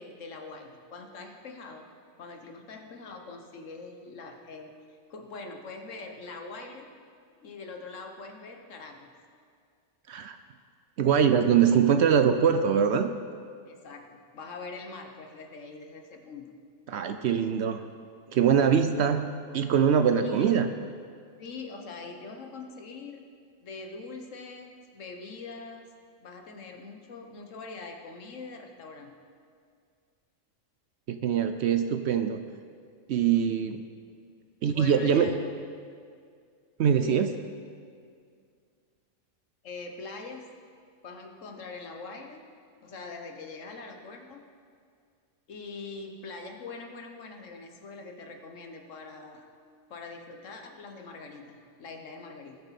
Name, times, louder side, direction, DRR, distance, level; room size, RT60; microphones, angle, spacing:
voice 1, 0.0-1.9 2.2-4.8 5.1-6.9 7.4-9.1 13.7-16.5 20.2-20.5 21.4-23.2 23.6-25.8 26.2-29.2 34.7-35.5 37.0-37.3 39.6-40.5 41.0-42.4 42.8-44.4 45.5-49.4 49.9-52.6, left 3 dB, 70° left, 4 dB, 1.4 m, -43 dB
voice 2, 11.0-13.1 16.9-17.8 18.3-19.3 19.5-20.7 31.1-32.4 33.1-33.8 34.6-35.3 36.8-37.3, right 7 dB, 65° right, 8 dB, 0.7 m, -23 dB
19.0 x 6.9 x 4.2 m, 2.2 s
omnidirectional pair, 1.4 m